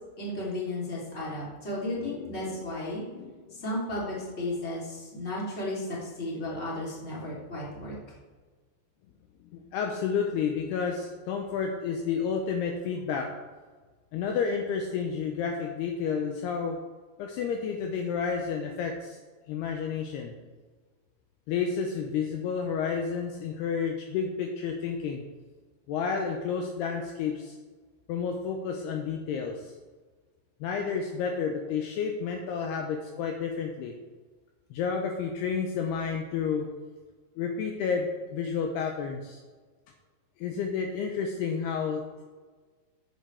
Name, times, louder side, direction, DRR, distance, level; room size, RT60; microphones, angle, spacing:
voice 1, 0.2-3.0 3.6-7.9, left 1 dB, 15° left, -6 dB, 2.8 m, -34 dB
voice 2, 1.9-2.6 3.1-3.6 9.5-13.3 14.1-16.8 17.2-19.2 19.5-20.3 21.5-25.2 25.9-27.6 28.1-29.7 30.6-34.0 34.7-36.7 37.4-39.4 40.4-42.2, left 6 dB, 80° left, 2 dB, 2.6 m, -31 dB
14.0 x 8.4 x 3.4 m, 1.4 s
omnidirectional pair, 5.2 m